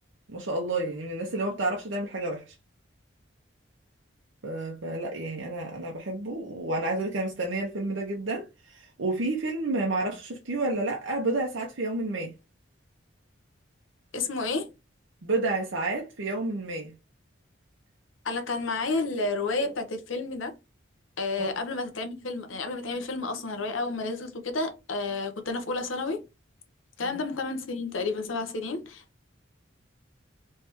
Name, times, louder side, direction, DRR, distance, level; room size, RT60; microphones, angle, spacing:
voice 1, 0.3-2.5 4.4-12.3 15.2-16.9 21.4-21.6 27.0-27.2, right 2 dB, 70° right, 0.8 m, -30 dB
voice 2, 14.1-14.7 18.2-20.5 21.2-26.3 27.0-29.0, left 3 dB, 80° left, 0.9 m, -31 dB
3.4 x 3.3 x 2.9 m
head